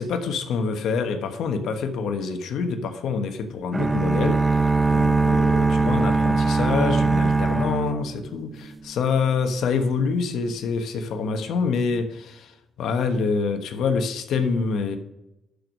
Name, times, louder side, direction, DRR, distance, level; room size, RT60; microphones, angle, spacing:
voice 1, 0.0-15.0, left 5 dB, 75° left, 8 dB, 1.2 m, -26 dB
sound 1, 3.7-8.7, right 3 dB, 20° right, 0.4 m, -21 dB
12.0 x 4.7 x 5.2 m, 0.92 s
cardioid pair, 90°, 0 cm